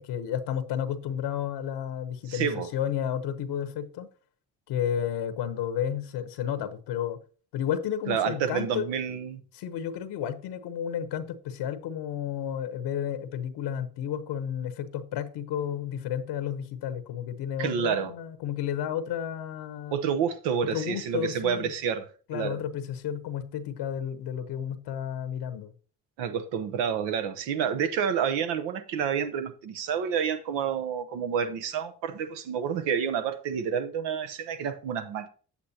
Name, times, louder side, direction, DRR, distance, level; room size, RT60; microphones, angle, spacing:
voice 1, 0.0-4.1 4.7-7.2 7.5-8.8 9.5-19.9 20.6-21.7 22.3-25.7, left 9 dB, 75° left, 0.9 m, -32 dB
voice 2, 2.3-2.7 8.1-9.4 17.6-18.1 19.9-22.6 26.2-35.3, right 7 dB, 90° right, 0.9 m, -29 dB
8.4 x 8.0 x 2.8 m
supercardioid pair, 55°, 41 cm